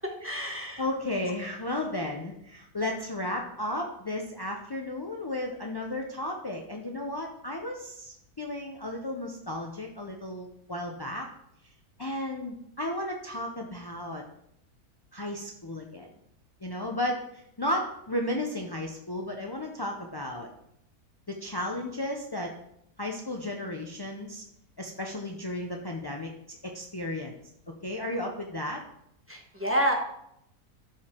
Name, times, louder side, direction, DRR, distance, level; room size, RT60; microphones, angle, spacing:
voice 1, 0.2-0.8 29.3-29.9, equal, 10° right, 0 dB, 1.1 m, -28 dB
voice 2, 0.8-11.3 12.0-14.2 15.1-16.1 16.6-20.5 21.3-22.5 23.0-24.4 24.8-27.3 27.8-28.8, left 1 dB, 35° left, 1 dB, 0.4 m, -34 dB
12.0 x 4.6 x 3.7 m, 0.75 s
omnidirectional pair, 1.6 m